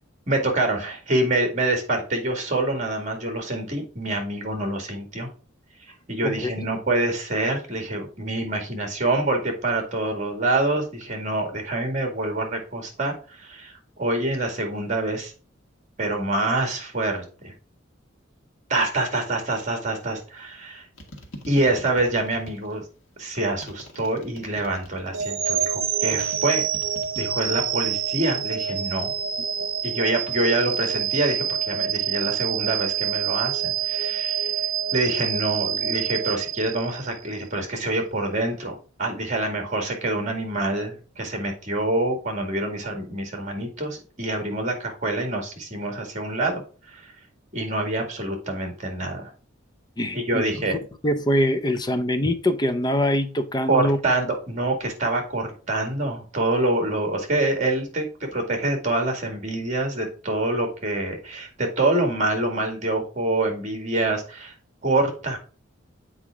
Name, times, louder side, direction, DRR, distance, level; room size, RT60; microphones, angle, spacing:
voice 1, 0.3-5.3 6.1-15.3 16.0-17.5 18.7-20.9 21.4-22.8 23.2-26.6 27.2-29.1 29.8-34.5 34.9-47.0 47.5-49.3 50.1-50.8 53.7-64.5 64.8-65.4, right 2 dB, 40° right, 2.1 m, -26 dB
voice 2, 6.2-6.7 50.0-50.4 51.0-54.0, left 1 dB, 20° left, 0.7 m, -23 dB
sound 1, 21.0-22.8 23.6-25.4 26.1-27.8 28.1-28.7, equal, 85° left, 1.6 m, -43 dB
sound 2, 25.1-37.3, right 9 dB, 85° right, 0.6 m, -27 dB
7.9 x 4.7 x 3.6 m
head